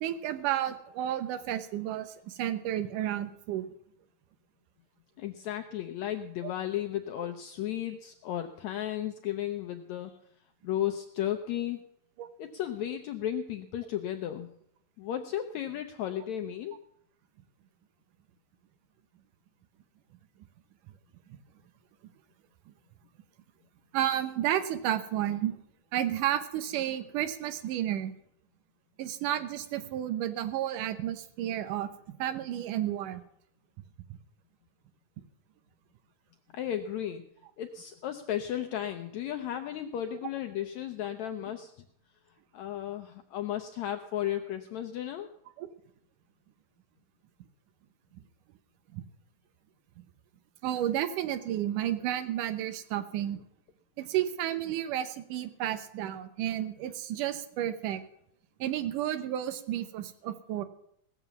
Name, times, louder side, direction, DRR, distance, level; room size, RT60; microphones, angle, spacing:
voice 1, 0.0-3.7 12.2-12.3 23.9-25.5 25.9-28.1 29.0-33.2 45.6-45.7 48.9-49.0 50.6-53.4 54.0-58.0 58.6-60.6, right 12 dB, 75° right, 10 dB, 2.4 m, -32 dB
voice 2, 5.2-10.2 10.6-11.8 12.4-14.5 15.0-16.8 36.5-37.3 37.6-41.9 42.5-45.3, left 11 dB, 80° left, 6 dB, 1.6 m, -34 dB
18.0 x 7.3 x 7.0 m, 0.72 s
omnidirectional pair, 4.0 m